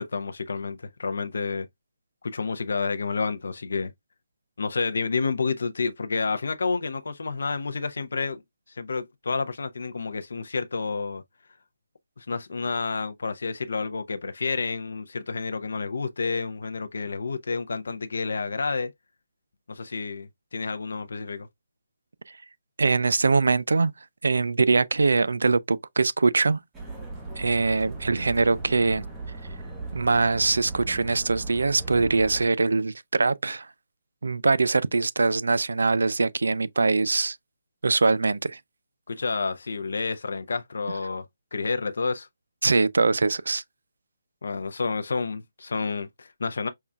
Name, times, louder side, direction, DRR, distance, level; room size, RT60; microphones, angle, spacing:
voice 1, 0.0-1.7 2.2-3.9 4.6-8.4 8.7-11.2 12.2-18.9 19.7-21.5 39.1-41.2 41.5-42.3 44.4-46.7, left 4 dB, 75° left, 0.5 m, -29 dB
voice 2, 22.8-23.9 24.2-26.6 27.4-29.0 29.9-33.7 34.2-37.4 37.8-38.6 42.6-43.6, right 3 dB, 90° right, 0.3 m, -23 dB
sound 1, 26.7-32.5, right 3 dB, 10° right, 0.9 m, -37 dB
5.3 x 2.3 x 2.2 m
hypercardioid pair, 165°, 0 cm